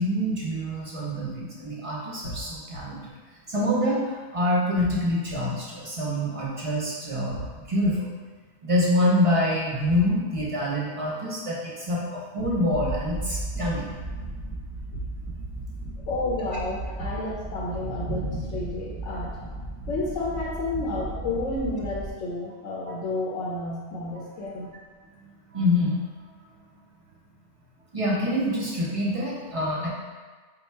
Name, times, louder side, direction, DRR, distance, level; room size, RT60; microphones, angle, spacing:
voice 1, 0.0-3.1 3.5-8.1 8.6-13.8 25.2-26.0 27.9-29.9, left 1 dB, 40° right, -5 dB, 0.5 m, -26 dB
sound 1, 2.2-2.8 4.8-5.4 7.3-7.9 9.8-10.4 12.4-13.0 14.9-15.5, equal, 60° left, 0.7 m, -37 dB
sound 2, 12.7-22.1, right 2 dB, 15° left, 0.4 m, -35 dB
voice 2, 16.1-19.4 19.9-24.7, left 2 dB, 75° left, -5 dB, 1.0 m, -31 dB
3.7 x 2.3 x 4.3 m, 1.4 s
omnidirectional pair, 1.3 m